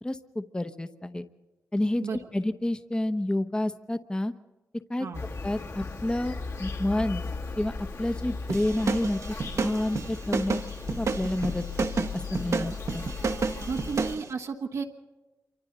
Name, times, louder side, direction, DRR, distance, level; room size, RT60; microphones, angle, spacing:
voice 1, 0.0-1.3 1.7-2.1 2.3-4.3 4.9-5.1 5.4-7.2 7.6-10.6 10.9-13.0, left 1 dB, 15° left, 9 dB, 0.9 m, -29 dB
Insect, 5.1-14.2, left 4 dB, 60° left, 2.2 m, -37 dB
sound 1, 8.5-14.2, right 4 dB, 60° right, 1.1 m, -30 dB
voice 2, 13.7-14.8, right 5 dB, 85° right, 0 dB, 1.4 m, -33 dB
27.5 x 25.0 x 4.0 m, 1.2 s
cardioid pair, 75°, 6 cm